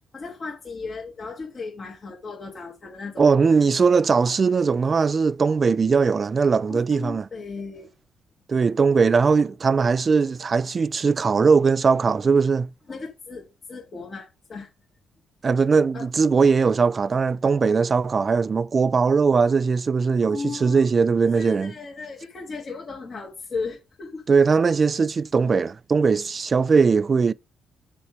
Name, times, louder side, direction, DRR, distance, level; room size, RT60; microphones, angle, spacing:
voice 1, 0.1-3.3 6.7-7.9 12.9-14.7 15.9-16.1 20.2-20.9 21.3-24.2, left 4 dB, 40° left, 2.1 m, -36 dB
voice 2, 3.2-7.3 8.5-12.7 15.4-21.7 24.3-27.3, right 5 dB, 35° right, 0.4 m, -20 dB
7.2 x 4.5 x 5.0 m
cardioid pair, 100°, 0 cm